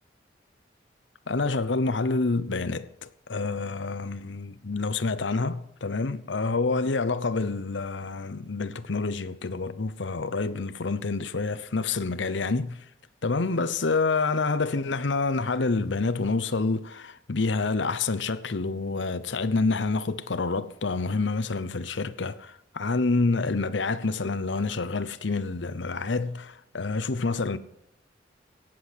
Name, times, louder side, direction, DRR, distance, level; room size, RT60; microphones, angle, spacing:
voice 1, 1.3-12.8 13.2-27.6, left 3 dB, 90° left, 0.8 m, -28 dB
17.5 x 7.8 x 8.0 m
head